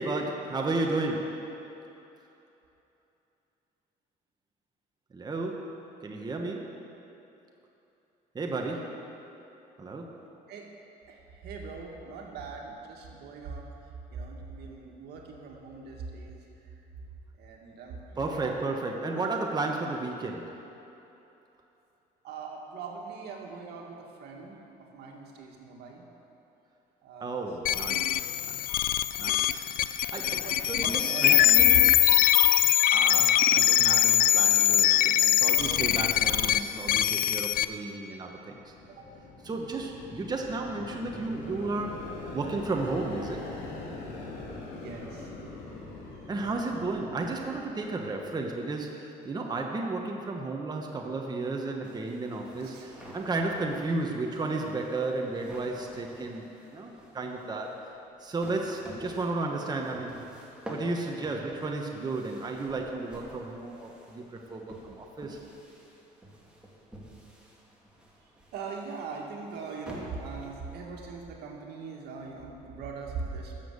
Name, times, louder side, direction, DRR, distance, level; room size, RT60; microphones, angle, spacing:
voice 1, 0.0-1.6 5.1-6.9 8.3-9.2 9.8-10.2 18.2-20.7 27.2-28.8 29.2-31.7 32.9-38.7 39.4-43.6 46.3-57.9 58.2-60.3 60.7-65.5, right 3 dB, 25° right, 1 dB, 1.1 m, -33 dB
voice 2, 11.0-16.7 17.4-18.5 22.2-24.6 24.9-26.0 27.0-27.9 30.2-32.0 38.9-39.1 44.7-45.3 46.1-46.2 52.6-53.1 68.5-73.6, right 4 dB, 75° right, 0 dB, 2.1 m, -41 dB
sound 1, 27.7-37.6, left 11 dB, 55° left, 0.4 m, -22 dB
sound 2, 38.4-48.2, left 3 dB, 90° left, 2.7 m, -42 dB
sound 3, 51.8-71.0, equal, 5° right, 2.5 m, -49 dB
13.0 x 7.2 x 8.1 m, 3.0 s
cardioid pair, 110°, 17 cm